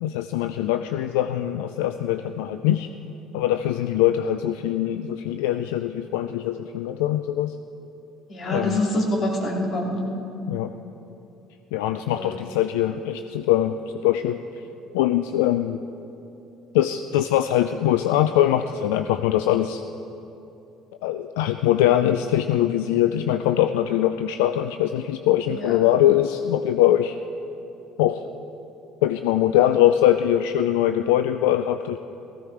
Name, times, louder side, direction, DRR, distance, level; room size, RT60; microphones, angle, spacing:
voice 1, 0.0-2.9 3.3-7.6 8.5-8.8 10.5-10.7 11.7-13.8 14.0-14.4 14.9-15.8 16.7-19.8 21.0-27.2 28.0-28.2 29.0-32.0, left 12 dB, 80° left, 9 dB, 0.4 m, -22 dB
voice 2, 8.3-10.1 12.1-12.4 25.5-25.7, left 1 dB, 50° left, -1 dB, 2.9 m, -26 dB
15.5 x 14.5 x 4.6 m, 2.9 s
hypercardioid pair, 70°, 0 cm